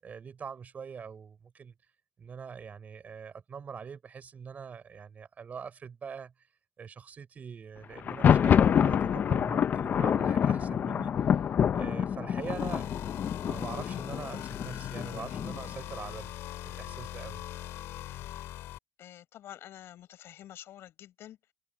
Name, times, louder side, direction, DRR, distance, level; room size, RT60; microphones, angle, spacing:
voice 1, 0.0-1.7 2.2-6.3 6.8-11.4 11.7-12.9 13.4-16.3 16.6-17.4, right 6 dB, 35° right, 6.2 m, -43 dB
Thunder, 8.0-15.7, left 8 dB, 40° left, 0.5 m, -27 dB
sound 1, 12.3-18.8, left 14 dB, 90° left, 2.0 m, -41 dB
voice 2, 19.0-21.5, left 12 dB, 65° left, 5.9 m, -48 dB
cardioid pair, 135°, 5 cm